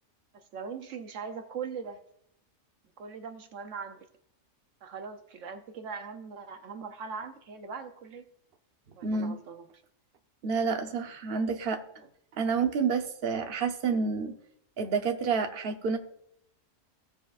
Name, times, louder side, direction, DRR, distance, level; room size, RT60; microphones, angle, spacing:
voice 1, 0.3-2.0 3.0-4.1 4.8-8.3 9.0-9.7 12.0-12.1, right 5 dB, 75° right, 7 dB, 1.1 m, -40 dB
voice 2, 9.0-9.4 10.4-11.8 12.4-14.3 14.8-16.0, right 5 dB, 50° right, 5 dB, 1.0 m, -29 dB
17.0 x 7.1 x 2.5 m, 0.73 s
omnidirectional pair, 1.3 m